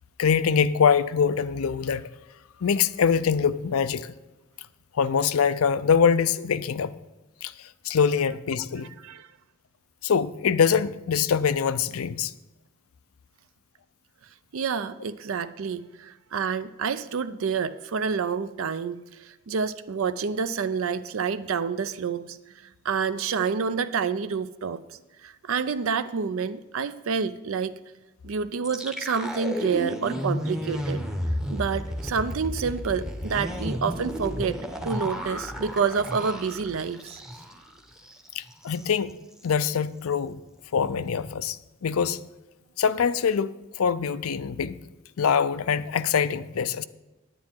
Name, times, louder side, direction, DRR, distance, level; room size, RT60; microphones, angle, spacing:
voice 1, 0.2-2.0 2.6-4.1 5.0-6.9 7.4-7.5 7.8-8.9 10.0-12.3 38.3-39.2 39.4-40.4 40.7-42.2 42.8-44.8 45.2-46.8, left 6 dB, 85° left, 0.5 m, -24 dB
voice 2, 14.5-22.4 22.8-24.8 25.2-27.7 28.2-31.0 31.5-34.6 34.8-37.2, right 5 dB, 70° right, 0.5 m, -28 dB
sound 1, 28.6-37.7 38.0-38.1 38.5-38.9, equal, 5° right, 0.8 m, -32 dB
9.5 x 9.3 x 4.5 m
head